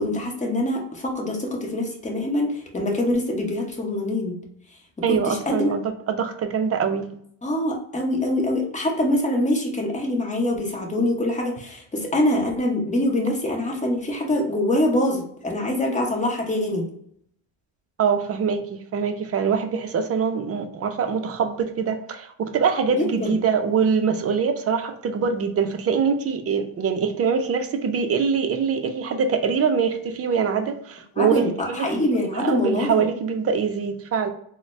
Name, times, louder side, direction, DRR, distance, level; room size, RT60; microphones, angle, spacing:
voice 1, 0.0-4.4 5.1-5.7 7.4-16.8 23.0-23.3 31.2-33.0, left 1 dB, 15° left, 0 dB, 0.9 m, -24 dB
voice 2, 5.0-7.1 18.0-32.1 32.3-34.3, right 6 dB, 30° right, 7 dB, 0.4 m, -24 dB
3.9 x 2.1 x 3.1 m, 0.68 s
cardioid pair, 110°, 48 cm